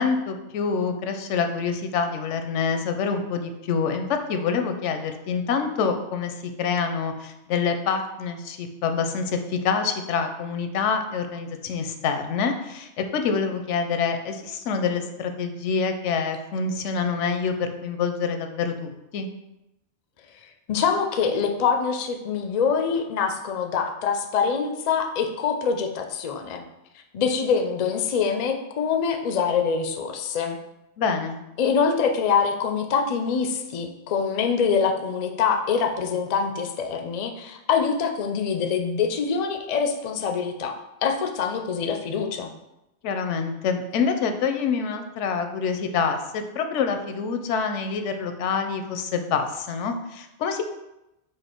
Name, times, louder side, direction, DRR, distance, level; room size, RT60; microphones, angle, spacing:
voice 1, 0.0-19.3 31.0-31.4 43.0-50.6, left 5 dB, 85° left, 7 dB, 0.9 m, -26 dB
voice 2, 20.7-26.6 27.1-30.6 31.6-40.7 41.0-42.5, left 6 dB, 60° left, 5 dB, 0.4 m, -24 dB
4.8 x 2.5 x 4.3 m, 0.91 s
omnidirectional pair, 1.2 m